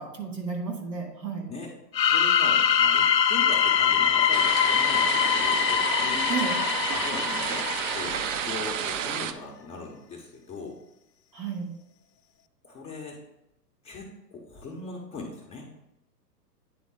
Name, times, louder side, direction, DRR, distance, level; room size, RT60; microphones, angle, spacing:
voice 1, 0.0-1.5 6.3-6.6 11.3-11.8, right 5 dB, 85° right, 2 dB, 2.2 m, -32 dB
sound 1, 1.9-8.6, left 8 dB, 90° left, 0.6 m, -23 dB
voice 2, 2.1-6.6 6.9-8.2 8.4-10.8 12.6-13.2 13.8-15.7, left 3 dB, 15° left, 0 dB, 0.6 m, -39 dB
sound 2, 4.3-9.3, right 8 dB, 50° right, 0.6 m, -31 dB
9.1 x 3.9 x 3.7 m, 0.87 s
hypercardioid pair, 115°, 49 cm